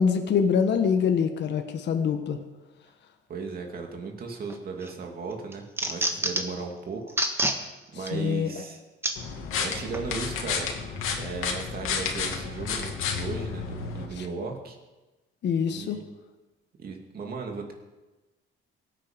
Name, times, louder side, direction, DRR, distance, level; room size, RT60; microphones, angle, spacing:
voice 1, 0.0-2.4 8.1-8.5 15.4-16.0, left 6 dB, 55° left, 6 dB, 1.4 m, -24 dB
voice 2, 3.3-7.2 7.9-8.8 9.6-10.7 11.1-14.8 15.7-16.0 16.8-17.7, right 4 dB, 45° right, 2 dB, 2.6 m, -36 dB
sound 1, 4.5-4.9 5.3-6.6 7.1-7.6 8.1-8.2 9.0-9.2 9.9-10.1, right 1 dB, 10° right, 1.5 m, -27 dB
sound 2, 9.2-14.1, left 6 dB, 85° left, 2.5 m, -31 dB
23.5 x 9.3 x 5.2 m, 1.1 s
cardioid pair, 150°, 21 cm